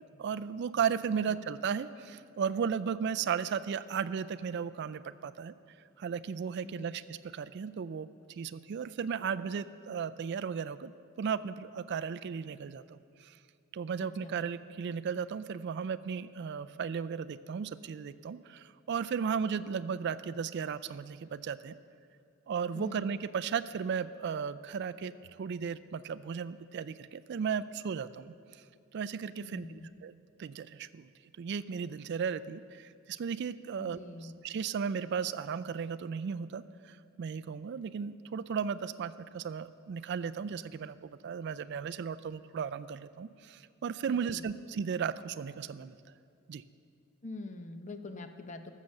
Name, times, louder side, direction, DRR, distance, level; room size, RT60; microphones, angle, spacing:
voice 1, 0.0-5.5 6.0-10.9 11.2-13.4 13.7-21.8 22.5-28.3 28.9-30.1 30.4-31.1 31.4-34.0 34.4-45.9 46.5-46.6, right 6 dB, 55° right, 14 dB, 0.3 m, -35 dB
voice 2, 1.1-1.5 6.6-7.0 14.0-14.4 19.7-19.8 22.7-23.0 29.4-29.9 33.8-34.3 44.1-44.5 47.2-48.7, left 2 dB, 35° left, 7 dB, 0.7 m, -45 dB
14.0 x 7.3 x 6.4 m, 2.4 s
head